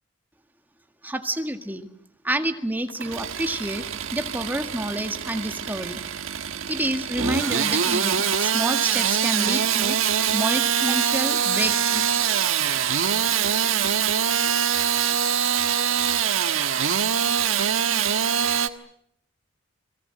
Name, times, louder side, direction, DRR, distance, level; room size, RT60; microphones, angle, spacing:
voice 1, 1.0-1.9 2.2-3.8 4.1-6.0 6.7-10.0 10.3-12.3, right 1 dB, 10° right, 7 dB, 1.8 m, -28 dB
Engine starting / Sawing, 2.9-18.7, right 8 dB, 80° right, 1.5 m, -24 dB
Bowed string instrument, 9.5-15.4, right 6 dB, 50° right, 4.9 m, -44 dB
30.0 x 22.0 x 7.7 m, 0.70 s
head